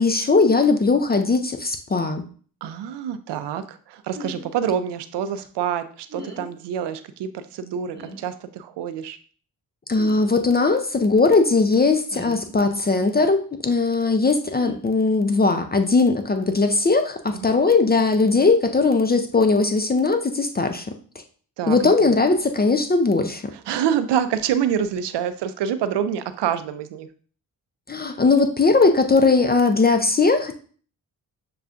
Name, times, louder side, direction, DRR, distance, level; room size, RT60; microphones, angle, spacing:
voice 1, 0.0-2.2 9.9-20.9 21.7-23.4 27.9-30.5, left 3 dB, 25° left, 7 dB, 0.4 m, -19 dB
voice 2, 2.6-9.2 17.3-17.5 21.6-22.1 23.5-27.1, right 8 dB, 80° right, 11 dB, 0.5 m, -27 dB
sound 1, 4.1-4.4 6.1-6.5 7.9-8.2 10.0-10.2 12.1-12.5 14.6-14.8, equal, 25° right, 1.0 m, -37 dB
6.6 x 2.3 x 2.4 m, 0.44 s
cardioid pair, 55°, 41 cm